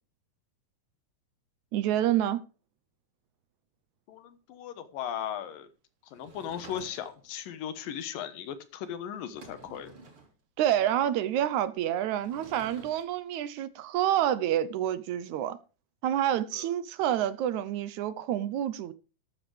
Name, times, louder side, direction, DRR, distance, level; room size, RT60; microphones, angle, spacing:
voice 1, 1.7-2.4 10.6-15.6 16.0-18.9, right 11 dB, 75° right, 1.9 m, -28 dB
voice 2, 4.1-5.7 6.1-9.9 16.5-16.7, left 9 dB, 80° left, 2.9 m, -37 dB
Sliding door / Wood, 6.1-7.3 8.8-8.9 9.2-10.3 12.1-13.0, right 4 dB, 40° right, 4.3 m, -51 dB
14.0 x 11.5 x 3.3 m
omnidirectional pair, 3.9 m